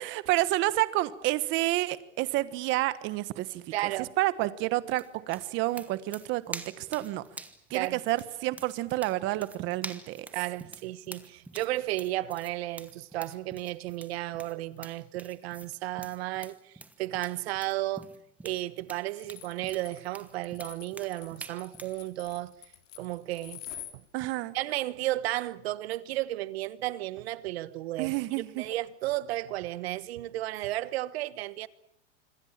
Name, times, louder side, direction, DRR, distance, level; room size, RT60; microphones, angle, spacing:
voice 1, 0.0-7.2 7.7-10.3 24.1-24.5 28.0-28.6, right 17 dB, 35° right, 1.3 m, -29 dB
voice 2, 3.7-4.1 7.7-8.0 10.3-18.1 18.4-22.5 23.0-23.6 24.5-28.1 28.5-31.7, right 16 dB, 60° right, 1.3 m, -33 dB
sound 1, 4.9-22.0, right 2 dB, 5° right, 1.3 m, -47 dB
sound 2, 19.2-23.9, left 11 dB, 85° left, 4.2 m, -46 dB
26.5 x 23.0 x 7.4 m
supercardioid pair, 155°, 35 cm